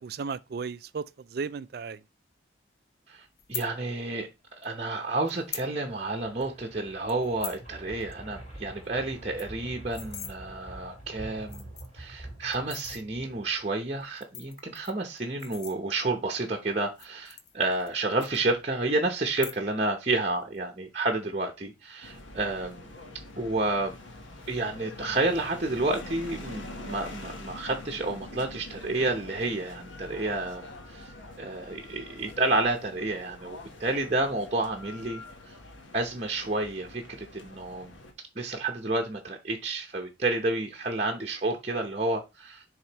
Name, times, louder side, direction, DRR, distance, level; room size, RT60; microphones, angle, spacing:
voice 1, 0.0-2.0, right 5 dB, 55° right, 0.3 m, -35 dB
voice 2, 3.1-4.3 4.6-11.7 11.9-22.8 23.4-24.0 24.5-31.1 31.4-35.2 35.5-35.6 35.9-38.0 38.4-42.6, right 2 dB, 35° right, 0.8 m, -30 dB
sound 1, 3.4-3.7 4.6-4.7 5.3-5.7 6.1-6.2 6.4-6.6 7.1-7.6 8.0-8.1 8.4-8.5 8.8-8.9 9.2-10.3 11.0-11.1 11.4-12.0 12.5-13.0 14.0-16.2 16.9-17.9 18.2-18.8 19.3-19.9 20.2-20.6, left 7 dB, 55° left, 0.8 m, -41 dB
sound 2, 5.9-13.8, right 1 dB, 35° left, 4.5 m, -46 dB
sound 3, 22.0-38.1, left 2 dB, 80° left, 1.2 m, -45 dB
10.0 x 3.7 x 3.0 m
head